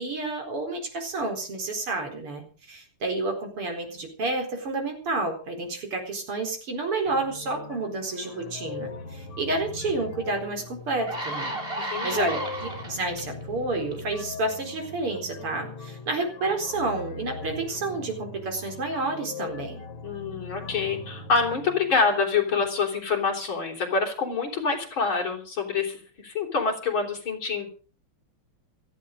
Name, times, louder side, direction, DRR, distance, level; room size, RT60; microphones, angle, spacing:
voice 1, 0.0-11.6 12.0-19.8, right 2 dB, 80° right, 4 dB, 5.2 m, -30 dB
sound 1, 7.1-22.7, left 3 dB, 90° left, 3.1 m, -41 dB
sound 2, 10.3-10.4 10.9-13.2 13.9-14.1, right 1 dB, 25° right, 3.6 m, -33 dB
voice 2, 11.8-12.3 20.0-27.7, left 4 dB, 65° left, 2 dB, 4.7 m, -26 dB
17.0 x 14.0 x 5.1 m, 0.39 s
omnidirectional pair, 2.4 m